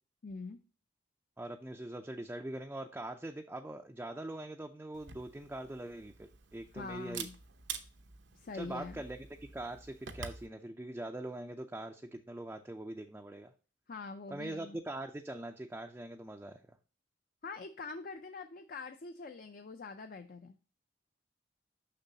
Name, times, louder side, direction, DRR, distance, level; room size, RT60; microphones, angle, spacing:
voice 1, 0.2-0.6 6.7-7.4 8.4-9.0 13.9-14.8 17.4-20.6, left 4 dB, 50° left, 7 dB, 0.5 m, -44 dB
voice 2, 1.4-7.3 8.5-9.3 9.5-13.5 14.3-16.8, right 1 dB, 10° right, 3 dB, 0.4 m, -42 dB
Camera, 4.9-10.5, right 7 dB, 80° right, 0.7 m, -47 dB
6.8 x 6.0 x 2.7 m, 0.35 s
head